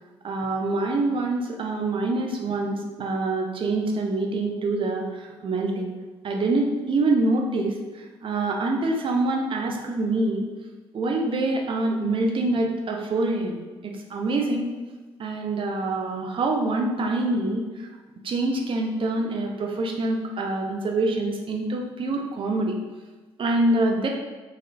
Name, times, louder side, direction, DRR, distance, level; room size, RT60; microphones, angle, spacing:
voice 1, 0.2-5.9 6.2-10.5 10.9-14.7 15.2-17.9 18.2-22.7 23.4-24.1, right 2 dB, 40° right, 1 dB, 0.6 m, -25 dB
3.9 x 3.1 x 2.6 m, 1.3 s
figure-of-eight pair, 45°, 13 cm